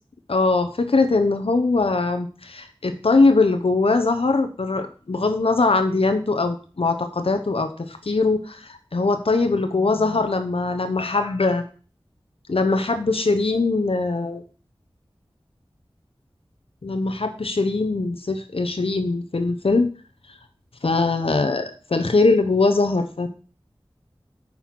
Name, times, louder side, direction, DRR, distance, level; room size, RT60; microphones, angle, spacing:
voice 1, 0.3-11.6 12.5-14.4 16.8-19.9 20.8-23.3, left 3 dB, 85° left, 7 dB, 1.0 m, -21 dB
8.9 x 5.6 x 6.1 m, 0.38 s
wide cardioid pair, 50°, 9 cm